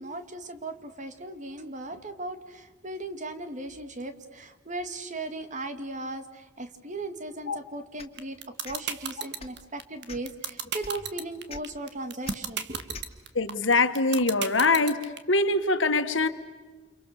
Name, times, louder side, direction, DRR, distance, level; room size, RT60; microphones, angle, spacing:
voice 1, 0.0-8.4 8.6-13.0, right 2 dB, 40° right, 8 dB, 2.2 m, -37 dB
sound 1, 8.0-8.2 8.6-8.8 9.3-9.6 10.1-10.3 10.8-10.9 11.5-11.6 12.2-12.3 12.9-13.1, left 4 dB, 30° left, 2.4 m, -42 dB
sound 2, 8.2-15.2, right 8 dB, 60° right, 1.8 m, -32 dB
voice 2, 13.4-15.0 15.3-16.3, left 3 dB, 80° left, 9 dB, 1.9 m, -23 dB
29.5 x 28.5 x 6.8 m, 1.3 s
head